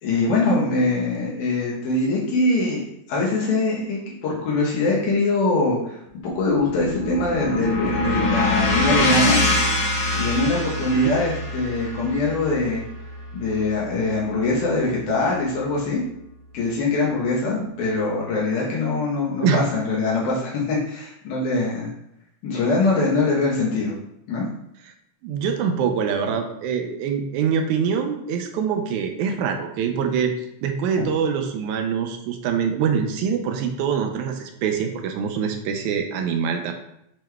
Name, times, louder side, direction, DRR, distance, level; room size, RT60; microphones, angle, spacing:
voice 1, 0.0-6.0 6.2-9.4 10.2-12.8 13.3-16.0 16.5-21.9 22.4-23.9 24.3-24.4, left 2 dB, 80° left, -5 dB, 2.4 m, -23 dB
sound 1, 6.3-14.6, left 1 dB, 60° left, 1.9 m, -24 dB
voice 2, 25.2-30.3 30.6-36.7, right 7 dB, 85° right, 5 dB, 2.0 m, -24 dB
7.4 x 3.1 x 2.2 m, 0.78 s
omnidirectional pair, 3.4 m